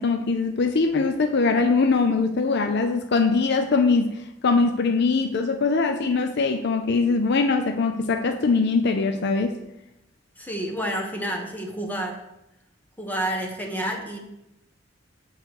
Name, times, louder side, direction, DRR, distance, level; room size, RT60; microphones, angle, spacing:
voice 1, 0.0-9.6, left 4 dB, 60° left, 6 dB, 0.5 m, -22 dB
voice 2, 10.4-12.2 13.0-14.2, right 1 dB, 10° left, 1 dB, 1.2 m, -29 dB
8.2 x 4.0 x 6.5 m, 0.87 s
head